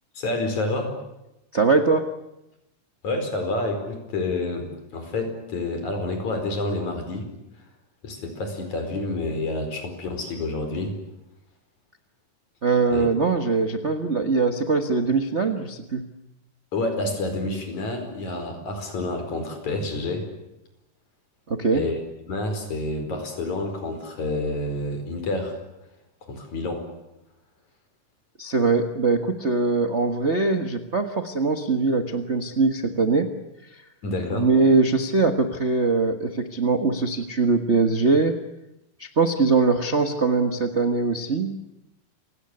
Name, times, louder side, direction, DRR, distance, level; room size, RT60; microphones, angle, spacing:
voice 1, 0.2-1.0 3.0-7.3 8.0-11.0 12.9-13.1 16.7-20.3 21.7-22.0 22.3-25.6 26.2-26.9 34.0-34.5, left 2 dB, 60° left, 6 dB, 6.1 m, -28 dB
voice 2, 1.5-2.1 12.6-16.0 21.5-21.9 28.4-33.3 34.3-38.4 39.0-41.6, right 4 dB, 75° right, 5 dB, 0.6 m, -22 dB
29.0 x 17.5 x 10.0 m, 0.92 s
omnidirectional pair, 3.9 m